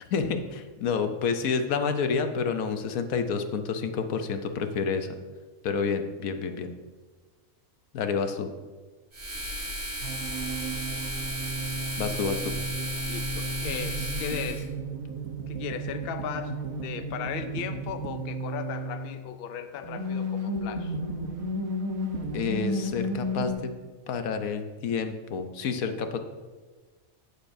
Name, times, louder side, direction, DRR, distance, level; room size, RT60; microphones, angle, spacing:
voice 1, 0.1-5.1 5.6-6.7 7.9-8.5 12.0-12.5 22.3-23.7 24.1-26.2, left 5 dB, 85° left, 7 dB, 1.2 m, -29 dB
sound 1, 9.1-14.6, equal, 70° right, 3.7 m, -34 dB
sound 2, 10.0-19.2 19.8-23.5, right 1 dB, 85° right, 1.4 m, -33 dB
voice 2, 13.1-14.7 15.5-21.0, left 8 dB, 55° left, 9 dB, 0.7 m, -37 dB
14.5 x 6.7 x 2.6 m, 1.3 s
omnidirectional pair, 1.4 m